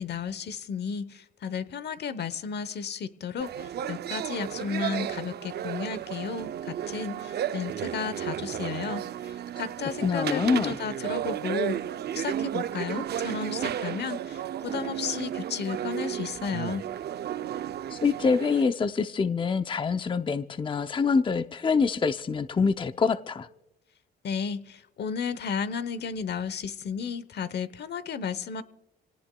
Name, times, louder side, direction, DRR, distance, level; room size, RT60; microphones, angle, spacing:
voice 1, 0.0-11.8 12.1-16.9 24.2-28.6, left 6 dB, 55° left, 15 dB, 0.9 m, -33 dB
sound 1, 3.4-18.6, right 10 dB, 55° right, 0.5 m, -33 dB
voice 2, 10.0-10.8 17.9-23.5, left 5 dB, 25° left, 10 dB, 0.6 m, -25 dB
27.5 x 18.0 x 2.3 m, 0.89 s
cardioid pair, 90°, 20 cm